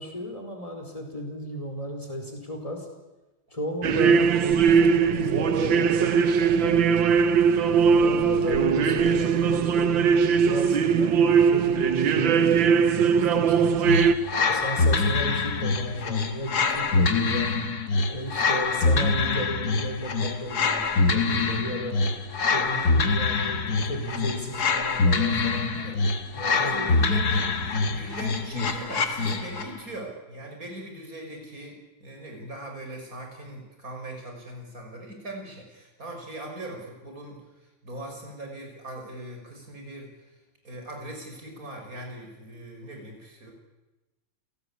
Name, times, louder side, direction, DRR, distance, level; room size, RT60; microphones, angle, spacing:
voice 1, 0.0-2.9 3.5-7.1 7.9-13.8 14.5-17.5 18.1-22.0 22.5-25.7 26.3-27.0, equal, 15° left, 3 dB, 4.8 m, -34 dB
sound 1, 3.8-14.1, right 6 dB, 90° right, 2.0 m, -20 dB
sound 2, 13.8-29.8, left 4 dB, 55° left, 2.1 m, -25 dB
voice 2, 14.3-14.8 25.7-26.0 26.5-27.5 27.8-37.4 37.8-40.1 40.6-43.5, right 1 dB, 45° right, 2 dB, 6.3 m, -40 dB
28.5 x 17.0 x 8.6 m, 1.1 s
omnidirectional pair, 2.0 m